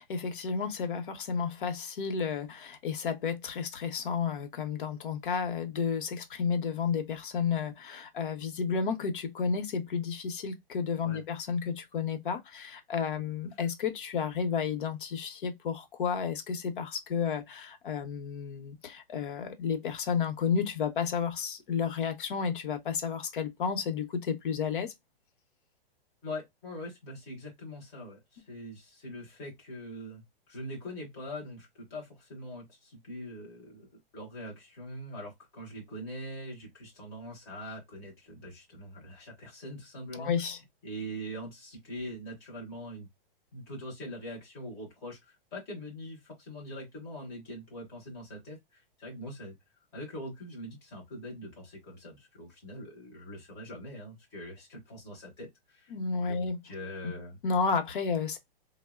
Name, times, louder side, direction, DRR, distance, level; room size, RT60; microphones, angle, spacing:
voice 1, 0.0-24.9 40.1-40.6 55.9-56.6 57.4-58.4, left 6 dB, 60° left, 0.8 m, -32 dB
voice 2, 26.2-33.9 34.1-40.3 40.8-43.1 43.5-49.5 49.9-57.4, equal, 10° left, 0.6 m, -43 dB
3.5 x 2.0 x 2.2 m
hypercardioid pair, 175°, 29 cm